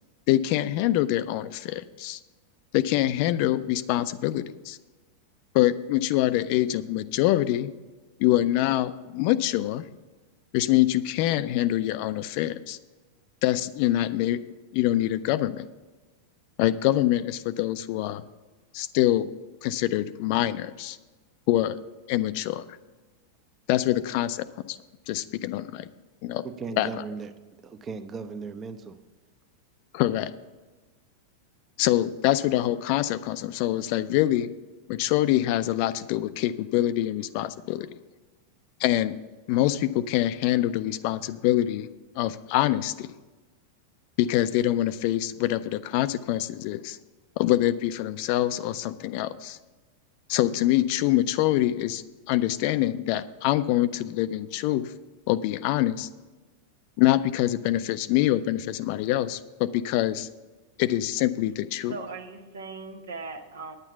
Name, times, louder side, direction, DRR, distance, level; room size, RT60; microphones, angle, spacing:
voice 1, 0.3-2.2 2.7-4.8 5.5-7.7 8.2-9.8 10.5-12.8 13.4-14.4 14.7-15.6 16.6-18.2 18.7-19.3 19.6-21.0 21.5-21.8 22.1-22.6 23.7-24.8 25.1-25.9 26.2-26.4 26.8-26.9 29.9-30.3 31.8-34.5 34.9-37.9 38.8-39.2 39.5-41.9 42.2-43.1 44.2-47.0 47.4-49.6 50.3-54.9 55.3-56.1 57.0-60.3 60.8-62.0, left 14 dB, 45° left, 14 dB, 0.4 m, -25 dB
voice 2, 26.4-27.3 27.6-29.0, right 4 dB, 25° right, 11 dB, 0.7 m, -37 dB
voice 3, 61.9-63.7, right 4 dB, 65° right, 7 dB, 1.1 m, -39 dB
9.7 x 9.0 x 5.8 m, 1.2 s
figure-of-eight pair, 90°, 0 cm